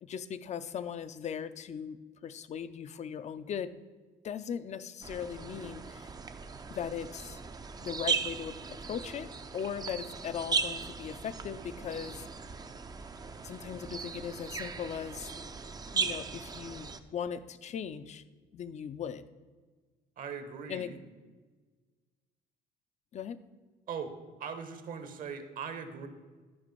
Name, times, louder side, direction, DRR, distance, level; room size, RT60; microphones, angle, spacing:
voice 1, 0.0-3.7 4.2-6.1 6.7-7.4 7.8-12.3 13.4-15.3 15.9-18.2 18.5-19.2 20.7-20.9 23.1-23.4, left 8 dB, 40° left, 14 dB, 0.5 m, -39 dB
sound 1, 5.0-17.0, right 5 dB, 25° right, 0.5 m, -38 dB
voice 2, 20.2-21.0 23.9-24.1 24.4-26.1, right 6 dB, 55° right, 8 dB, 1.2 m, -40 dB
12.0 x 5.1 x 5.3 m, 1.4 s
cardioid pair, 110°, 17 cm